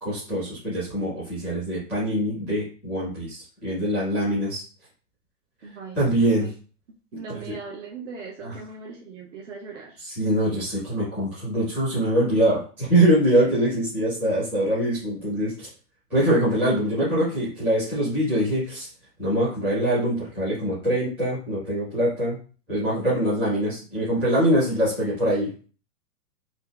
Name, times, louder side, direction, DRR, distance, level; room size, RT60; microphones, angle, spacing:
voice 1, 0.0-4.6 5.9-6.5 7.3-7.5 8.4-8.5 10.0-15.7 16.1-18.9 19.2-22.4 22.7-25.7, right 1 dB, 5° right, -12 dB, 0.5 m, -23 dB
voice 2, 5.6-6.5 7.1-10.0, right 5 dB, 50° right, -1 dB, 0.6 m, -39 dB
3.9 x 2.3 x 2.2 m, 0.39 s
hypercardioid pair, 160°, 47 cm